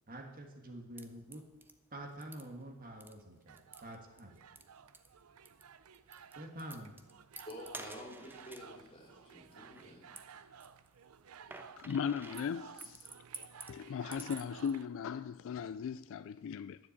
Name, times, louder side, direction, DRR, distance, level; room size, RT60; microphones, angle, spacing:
voice 1, 0.1-1.4 1.9-4.4 6.4-7.0, right 1 dB, 40° right, 1.5 m, -47 dB
sound 1, 1.0-14.7, right 2 dB, 10° right, 0.5 m, -53 dB
sound 2, 3.5-14.9, right 7 dB, 70° right, 0.5 m, -55 dB
voice 2, 7.5-10.1, equal, 25° left, 3.0 m, -49 dB
voice 3, 11.8-13.1 13.7-16.8, left 7 dB, 60° left, 0.3 m, -38 dB
10.0 x 6.9 x 8.4 m
head